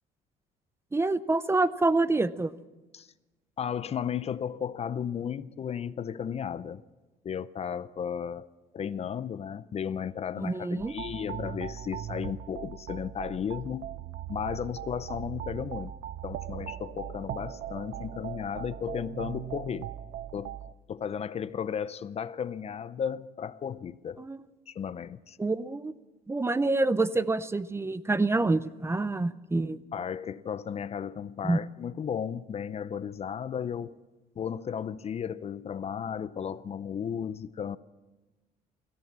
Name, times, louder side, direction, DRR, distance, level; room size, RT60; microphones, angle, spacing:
voice 1, 0.9-2.5 10.4-10.9 24.2-24.4 25.4-25.9 26.3-29.8 31.4-31.6, right 2 dB, 15° right, 15 dB, 0.6 m, -27 dB
voice 2, 3.6-6.8 7.2-8.5 8.7-13.9 14.3-15.9 16.2-19.9 20.3-20.6 20.9-24.2 24.7-25.4 29.9-33.9 34.4-37.8, left 8 dB, 40° left, 16 dB, 0.6 m, -34 dB
sound 1, 10.8-20.7, right 11 dB, 65° right, 0.6 m, -39 dB
28.0 x 14.0 x 7.4 m, 1.2 s
cardioid pair, 110°, 17 cm